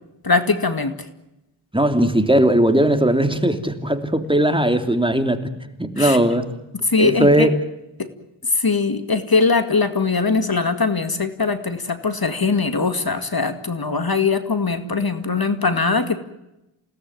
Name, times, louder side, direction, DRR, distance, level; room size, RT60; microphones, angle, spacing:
voice 1, 0.2-1.1 6.0-6.2 6.8-7.5 8.0-8.1 8.4-16.2, left 4 dB, 45° left, 9 dB, 2.2 m, -21 dB
voice 2, 1.7-5.4 5.8-6.5 7.0-7.5, right 1 dB, 10° right, 7 dB, 2.8 m, -18 dB
28.5 x 18.0 x 9.4 m, 0.92 s
wide cardioid pair, 60°, 50 cm